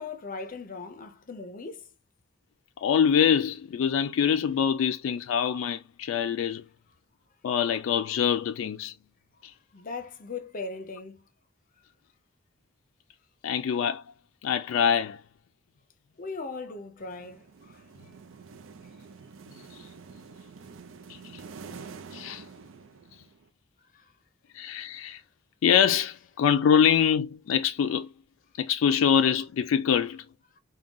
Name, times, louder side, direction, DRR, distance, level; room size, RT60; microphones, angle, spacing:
voice 1, 0.0-1.9 9.7-11.2 16.2-17.8 23.9-24.1, left 4 dB, 45° left, 0.6 m, -39 dB
voice 2, 2.8-6.6 7.4-8.9 9.4-9.5 13.4-14.0 14.4-15.2 21.1-21.2 22.1-22.4 24.5-25.2 25.6-28.1 28.6-30.2, left 8 dB, 90° left, 0.3 m, -24 dB
sound 1, 17.0-23.5, right 5 dB, 85° right, 0.5 m, -47 dB
3.5 x 2.2 x 3.7 m
head